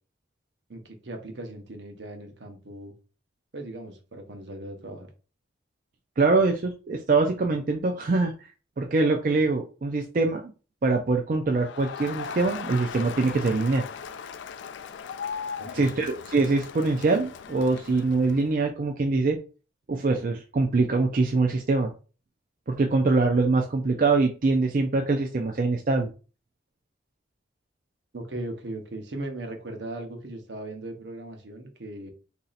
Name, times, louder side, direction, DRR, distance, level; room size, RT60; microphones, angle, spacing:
voice 1, 0.7-2.9 3.5-5.1 15.6-15.9 28.1-32.1, right 1 dB, 75° right, 0.9 m, -38 dB
voice 2, 6.2-8.3 8.8-10.5 10.8-13.8 15.7-19.4 19.9-21.9 22.7-26.1, right 3 dB, 45° right, 0.4 m, -23 dB
Crowd, 11.5-18.6, left 6 dB, 80° left, 0.4 m, -38 dB
2.9 x 2.7 x 4.0 m
head